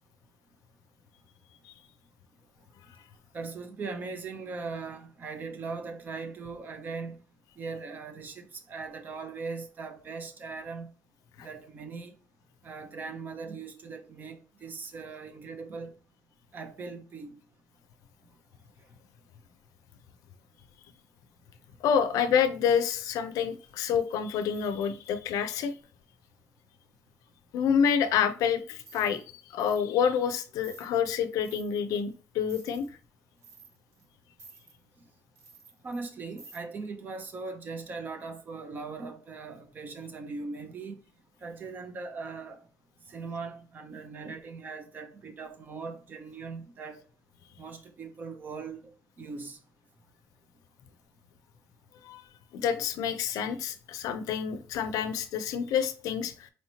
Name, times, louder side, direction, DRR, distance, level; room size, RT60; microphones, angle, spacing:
voice 1, 3.3-7.2 7.6-10.9 11.4-12.1 12.6-15.9 16.5-17.4 35.8-41.0 41.4-42.6 43.1-47.0 47.6-49.6, right 4 dB, 30° right, 0.6 m, -40 dB
voice 2, 21.8-25.7 27.5-29.2 29.5-32.9 52.0-52.2 52.5-56.5, left 7 dB, 80° left, 0.5 m, -28 dB
sound 1, 23.7-25.8 28.8-29.2 29.6-29.8 30.2-30.3 30.6-30.9 31.4-32.0 32.5-32.9 33.4-34.0 34.4-34.7 35.4-36.1 36.4-36.6, right 4 dB, 50° right, 1.4 m, -53 dB
4.3 x 2.9 x 2.8 m
cardioid pair, 170°, 6 cm